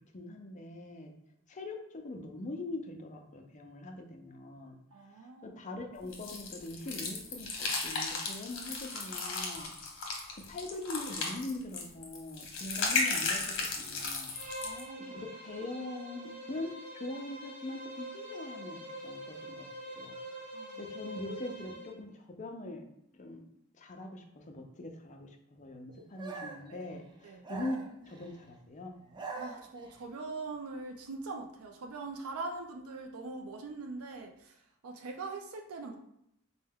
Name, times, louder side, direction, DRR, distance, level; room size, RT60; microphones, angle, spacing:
voice 1, 0.1-1.1 1.5-4.7 5.4-9.7 10.5-14.3 15.1-20.2 20.8-22.8 23.2-23.4 23.7-28.9, left 2 dB, 35° left, 3 dB, 0.5 m, -42 dB
voice 2, 4.9-5.6 14.6-15.2 20.5-20.8 26.0-26.1 26.7-26.8 27.2-27.4 29.4-36.0, right 3 dB, 85° right, 3 dB, 0.4 m, -42 dB
sound 1, 6.1-14.8, left 3 dB, 60° left, 0.9 m, -35 dB
Bowed string instrument, 14.3-22.0, right 1 dB, 40° right, 0.9 m, -44 dB
sound 2, 26.2-26.7 27.4-28.4 29.0-30.0, right 4 dB, 20° right, 0.5 m, -43 dB
4.4 x 2.1 x 3.5 m, 0.75 s
head